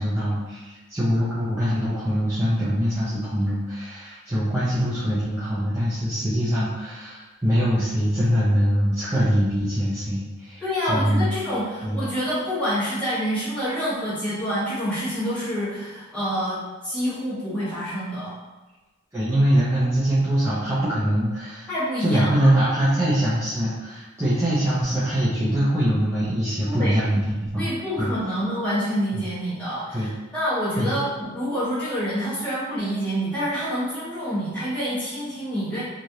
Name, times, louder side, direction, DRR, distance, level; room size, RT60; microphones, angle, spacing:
voice 1, 0.0-10.6 10.9-11.3 11.8-12.1 19.1-21.7 22.0-27.7 28.0-28.1 29.1-29.2 29.9-30.1 30.8-31.0, equal, 15° right, -11 dB, 0.5 m, -23 dB
voice 2, 10.6-18.3 21.7-22.5 26.7-27.0 27.6-35.8, equal, 5° left, -11 dB, 1.2 m, -27 dB
3.1 x 2.5 x 2.7 m, 1.1 s
head